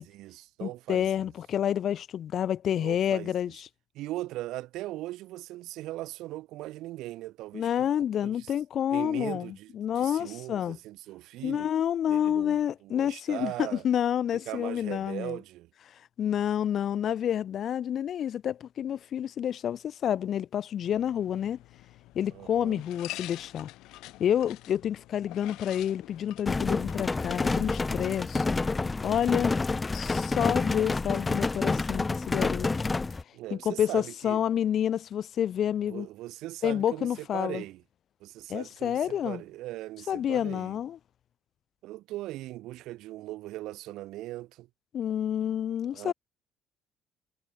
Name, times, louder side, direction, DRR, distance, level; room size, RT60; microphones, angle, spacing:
voice 1, 0.0-1.1 2.7-3.3 3.9-7.9 8.2-8.5 8.9-11.7 12.1-13.8 14.3-15.7 22.3-22.8 33.3-34.4 35.8-37.8 38.2-40.8 41.8-44.7 45.9-46.1, right 16 dB, 75° right, 1.2 m, -39 dB
voice 2, 0.6-3.7 7.5-10.8 11.4-15.4 16.2-21.6 22.1-23.7 24.2-28.4 29.0-29.6 29.9-32.7 33.5-36.1 36.6-37.6 38.5-39.4 40.1-41.0 44.9-46.1, left 9 dB, 45° left, 0.9 m, -29 dB
sound 1, 20.8-28.8, left 18 dB, 80° left, 4.8 m, -47 dB
sound 2, 26.5-33.2, left 3 dB, 15° left, 0.3 m, -28 dB
cardioid pair, 155°, 0 cm